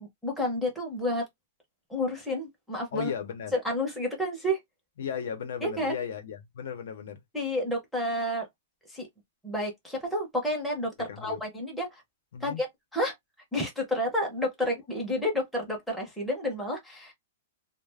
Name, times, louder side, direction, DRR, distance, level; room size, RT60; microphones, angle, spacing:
voice 1, 0.2-1.2 1.9-3.1 3.5-4.6 5.6-5.9 7.3-8.5 8.9-9.1 9.4-12.0 12.4-12.7 12.9-13.1 13.5-17.1, left 1 dB, ahead, 0.7 m, -30 dB
voice 2, 2.9-3.6 5.0-7.2 11.0-11.4 12.3-12.6 14.6-14.7, left 8 dB, 65° left, 0.7 m, -36 dB
2.3 x 2.1 x 3.2 m
supercardioid pair, 175°, 0 cm